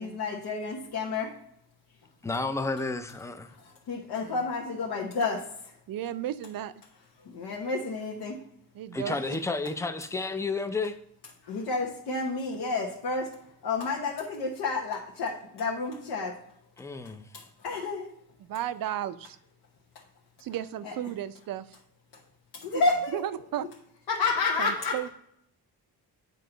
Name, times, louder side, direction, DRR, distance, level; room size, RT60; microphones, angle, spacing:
voice 1, 0.0-1.3 3.5-5.7 7.2-8.4 9.0-9.1 11.4-13.3 13.6-16.4 17.3-18.1 20.8-20.9 22.5-23.2 24.1-25.1, left 3 dB, 80° left, -1 dB, 1.1 m, -30 dB
voice 2, 2.2-3.5 8.9-10.9 16.8-17.2, left 3 dB, 10° left, 9 dB, 0.4 m, -31 dB
voice 3, 5.9-6.7 8.7-9.4 18.4-19.4 20.4-21.8 22.7-22.8 23.1-23.7 24.6-25.1, right 11 dB, 60° right, 14 dB, 0.5 m, -34 dB
8.4 x 4.7 x 3.8 m, 0.74 s
cardioid pair, 135°, 38 cm